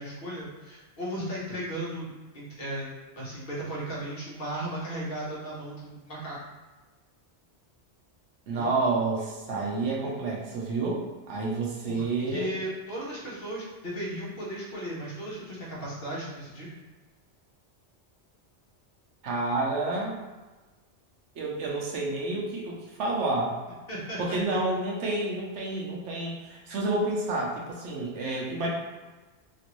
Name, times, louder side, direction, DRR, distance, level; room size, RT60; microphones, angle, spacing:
voice 1, 0.0-6.4 8.5-8.7 11.9-16.7 23.9-24.6, right 1 dB, 60° left, -6 dB, 1.1 m, -36 dB
voice 2, 8.5-12.5 19.2-20.2 21.4-23.6 24.2-28.7, right 2 dB, 80° right, -2 dB, 1.0 m, -29 dB
3.0 x 2.5 x 3.0 m, 1.2 s
omnidirectional pair, 1.2 m